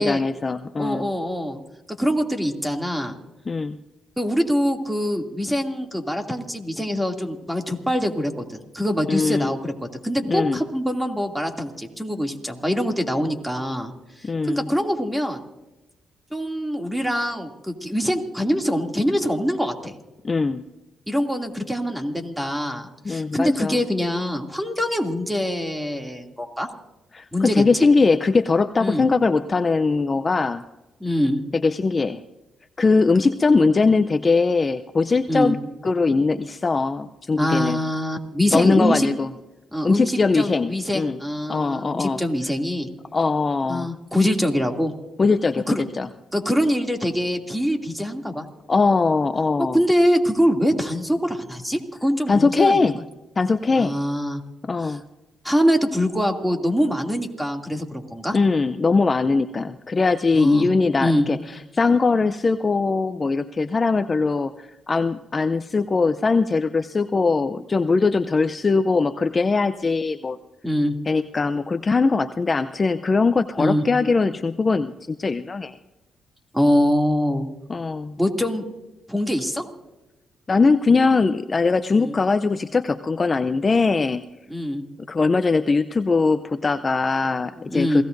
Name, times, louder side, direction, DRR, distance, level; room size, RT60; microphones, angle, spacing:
voice 1, 0.0-1.1 3.5-3.8 9.1-9.6 10.3-10.6 14.2-14.7 20.2-20.6 23.0-23.8 27.1-30.6 31.5-32.2 32.8-35.6 35.8-37.8 38.5-39.3 39.8-41.2 41.5-42.2 43.1-43.9 45.2-46.1 48.7-49.8 52.3-53.0 53.4-53.9 54.6-55.0 58.3-70.4 71.1-75.8 77.7-78.2 80.5-84.2 85.1-88.0, left 4 dB, 35° left, 10 dB, 0.6 m, -21 dB
voice 2, 0.8-1.6 2.0-3.2 4.2-9.7 10.0-15.4 16.3-19.9 21.1-26.7 27.3-27.6 28.8-29.0 31.0-31.4 35.3-35.5 37.4-39.1 39.7-42.9 43.7-44.9 45.7-45.8 46.3-48.4 49.7-52.9 53.8-54.4 54.8-55.0 55.4-58.4 60.3-60.7 61.0-61.3 70.6-70.9 73.6-73.8 76.5-77.5 78.2-78.7 79.1-79.6 81.9-82.1 84.5-84.8 87.6-88.0, equal, 5° right, 3 dB, 2.6 m, -24 dB
28.0 x 17.0 x 2.6 m, 1.0 s
supercardioid pair, 65°, 0 cm